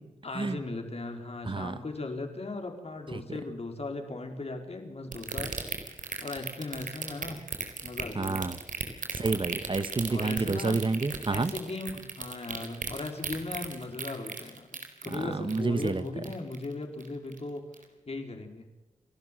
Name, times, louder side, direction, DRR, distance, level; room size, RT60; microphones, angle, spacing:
voice 1, 0.2-5.9 6.2-7.4 7.8-8.5 10.1-10.8 11.3-17.6 18.1-18.7, left 2 dB, 50° left, 4 dB, 4.5 m, -38 dB
voice 2, 1.4-1.8 8.1-8.6 9.1-11.5 15.1-16.0, right 3 dB, 40° right, 13 dB, 1.2 m, -29 dB
sound 1, 5.1-16.7 17.0-17.4 17.7-17.8, right 5 dB, 90° right, 4.0 m, -36 dB
30.0 x 12.5 x 7.7 m, 1.1 s
wide cardioid pair, 75°, 13 cm